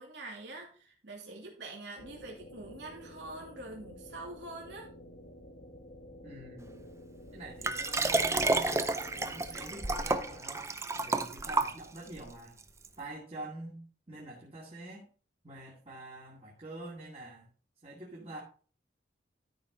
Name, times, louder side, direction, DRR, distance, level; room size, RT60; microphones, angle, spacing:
voice 1, 0.0-4.9, right 2 dB, 75° right, -1 dB, 2.8 m, -45 dB
sound 1, 2.0-10.4, left 1 dB, 65° left, 1.9 m, -50 dB
voice 2, 6.2-6.8 7.3-10.7 11.0-12.6 13.0-15.1 15.4-17.5 17.8-18.4, right 1 dB, 35° right, -5 dB, 2.3 m, -46 dB
Liquid, 7.6-12.2 12.8-12.9, right 3 dB, 15° right, 0.6 m, -30 dB
13.0 x 5.3 x 3.9 m, 0.39 s
head